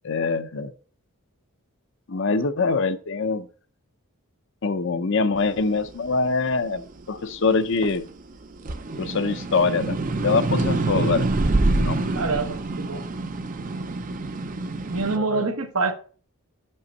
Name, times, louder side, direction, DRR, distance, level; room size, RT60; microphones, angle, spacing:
voice 1, 0.0-0.7 2.1-3.5 4.6-8.0 9.0-10.0 10.2-11.3 11.8-12.1 15.2-15.5, left 4 dB, 55° left, 0.6 m, -24 dB
sound 1, 5.5-8.1 8.5-15.2, right 2 dB, 35° right, 0.5 m, -26 dB
voice 2, 12.1-13.0 14.9-15.9, right 3 dB, 80° right, 1.1 m, -26 dB
6.1 x 5.4 x 5.4 m
head